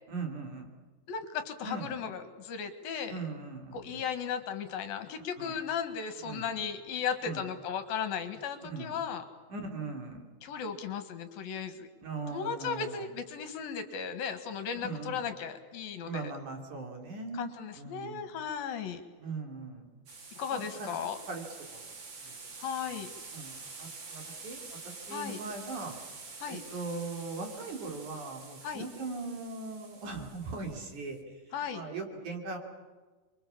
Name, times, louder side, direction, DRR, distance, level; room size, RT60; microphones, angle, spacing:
voice 1, 0.1-0.7 1.6-1.9 3.1-4.0 5.4-5.6 6.2-6.5 7.2-7.4 8.7-8.9 9.5-10.2 12.0-13.1 14.8-15.2 16.0-18.3 19.2-19.8 20.5-20.9 21.3-21.4 21.7-21.9 22.3-22.5 23.3-24.6 24.8-25.9 26.5-31.2 31.7-32.6, right 3 dB, 50° right, 3 dB, 4.5 m, -39 dB
voice 2, 1.1-3.2 3.7-9.2 10.4-11.9 12.3-16.3 17.3-19.0 20.4-21.2 22.6-23.1 25.1-25.4 26.4-26.6 28.6-28.9 31.5-31.8, left 7 dB, 70° left, 9 dB, 3.2 m, -36 dB
sound 1, 20.1-31.1, right 4 dB, 35° right, 2.4 m, -47 dB
30.0 x 23.5 x 7.2 m, 1.4 s
omnidirectional pair, 4.6 m